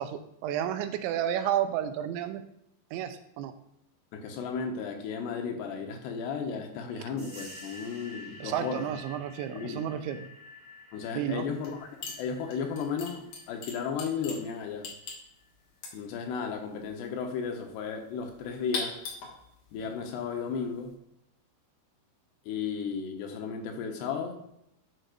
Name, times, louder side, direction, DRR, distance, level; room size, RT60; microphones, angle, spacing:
voice 1, 0.0-2.4 2.9-3.5 8.4-10.3 11.2-11.5, right 10 dB, 90° right, 8 dB, 3.0 m, -31 dB
voice 2, 4.1-8.9 9.5-9.8 10.9-11.9 12.2-14.9 15.9-19.0 19.7-20.9 22.5-24.5, left 6 dB, 75° left, 3 dB, 2.9 m, -34 dB
sound 1, 7.2-15.5, left 2 dB, 25° right, 1.3 m, -50 dB
sound 2, 11.6-11.8 12.0-20.9, left 4 dB, 60° left, 2.5 m, -42 dB
10.5 x 6.5 x 2.5 m, 0.79 s
omnidirectional pair, 5.2 m